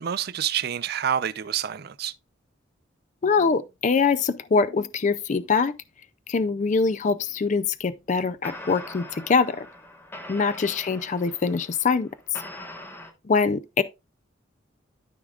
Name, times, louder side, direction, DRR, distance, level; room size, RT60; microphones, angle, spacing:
voice 1, 0.0-2.1, right 9 dB, 55° right, 0.4 m, -27 dB
voice 2, 3.2-5.7 6.3-9.7 10.3-12.1 13.3-13.8, left 4 dB, 40° left, 0.4 m, -23 dB
sound 1, 8.1-8.2 8.4-13.1, left 1 dB, 10° left, 1.2 m, -42 dB
13.0 x 5.0 x 2.4 m
head